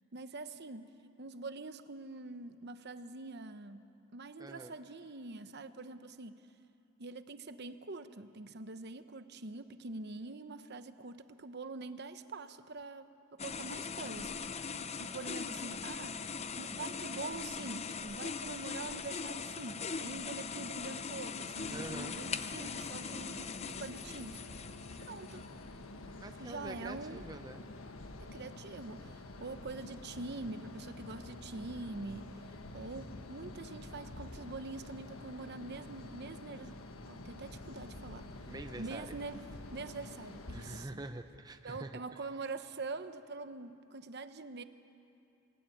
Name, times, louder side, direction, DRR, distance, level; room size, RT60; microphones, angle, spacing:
voice 1, 0.1-3.9 4.1-6.4 7.0-14.3 15.0-16.2 16.6-24.4 25.0-25.4 26.4-27.2 28.2-32.4 32.7-38.3 38.8-41.0 41.6-44.6, right 3 dB, 55° right, 10 dB, 0.9 m, -44 dB
voice 2, 4.4-4.7 21.7-22.2 26.2-27.6 38.5-39.2 40.5-42.2, right 2 dB, 20° right, 7 dB, 0.7 m, -46 dB
sound 1, 13.4-25.7, left 5 dB, 30° left, 0.6 m, -41 dB
sound 2, 21.5-40.9, left 2 dB, 90° left, 1.5 m, -48 dB
28.0 x 17.5 x 9.3 m, 2.7 s
head